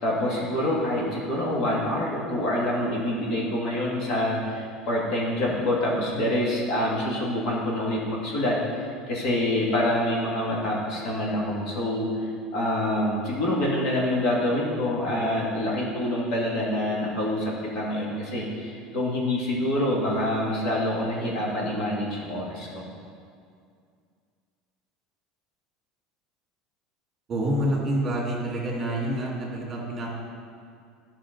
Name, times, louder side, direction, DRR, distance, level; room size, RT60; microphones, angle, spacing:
voice 1, 0.0-22.9, left 1 dB, 55° left, -4 dB, 2.2 m, -26 dB
voice 2, 27.3-30.2, right 1 dB, 25° right, -4 dB, 2.2 m, -27 dB
11.5 x 5.7 x 3.9 m, 2.2 s
cardioid pair, 140°, 0 cm